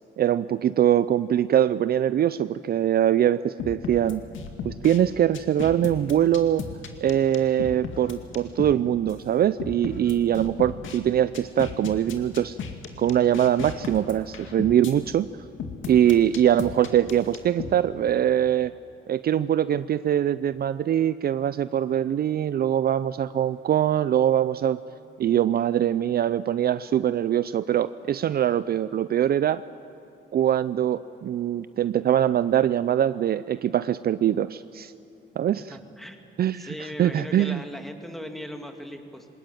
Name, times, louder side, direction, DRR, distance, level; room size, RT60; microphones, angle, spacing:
voice 1, 0.2-4.2 4.6-6.7 7.0-12.6 13.0-15.3 15.9-18.7 19.1-24.8 25.2-29.6 30.3-34.9 35.4-35.8 36.4-37.6, right 10 dB, 50° right, 15 dB, 0.5 m, -23 dB
sound 1, 3.6-5.0 5.3-8.8 9.1-9.2 9.6-11.0 11.3-14.9 15.6-17.7, left 6 dB, 75° left, 2.2 m, -35 dB
voice 2, 35.5-36.3 36.5-39.3, equal, ahead, 5 dB, 2.2 m, -38 dB
20.5 x 19.5 x 9.1 m, 2.9 s
cardioid pair, 90°, 20 cm